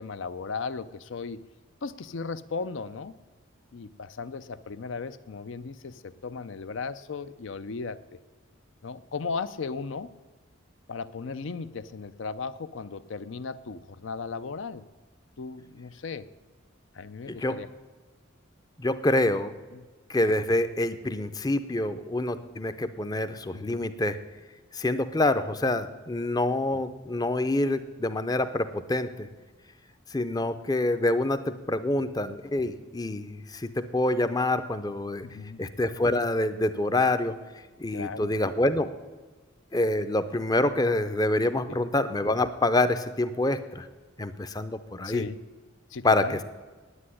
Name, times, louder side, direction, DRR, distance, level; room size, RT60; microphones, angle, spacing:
voice 1, 0.0-1.4 1.8-3.2 3.7-8.2 8.8-10.1 10.9-14.8 15.4-16.3 16.9-17.7 19.7-19.9 23.5-23.9 26.7-26.8 35.2-35.6 37.9-38.3 41.7-41.8 45.0-45.4 45.9-46.4, left 4 dB, 65° left, 14 dB, 0.5 m, -36 dB
voice 2, 18.8-19.5 20.1-24.2 24.7-29.3 30.1-35.3 35.6-37.3 37.8-38.9 39.7-43.9 44.2-45.2 46.0-46.4, left 2 dB, 20° left, 11 dB, 0.5 m, -26 dB
9.8 x 8.6 x 9.9 m, 1.3 s
head